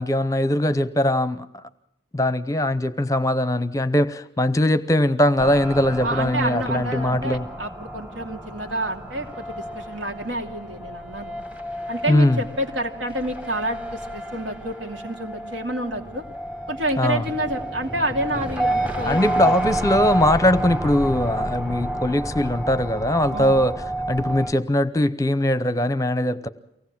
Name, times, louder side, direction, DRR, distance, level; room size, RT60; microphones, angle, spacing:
voice 1, 0.0-1.6 2.1-7.4 12.1-12.4 17.0-17.2 19.1-23.7 24.1-26.5, left 1 dB, 20° left, 14 dB, 0.7 m, -21 dB
sound 1, 5.4-24.5, right 1 dB, 5° right, 1.3 m, -30 dB
voice 2, 6.0-11.3 11.9-16.2 16.7-19.6 23.3-23.6, right 1 dB, 80° right, 3 dB, 2.7 m, -29 dB
24.0 x 18.0 x 7.4 m, 0.80 s
head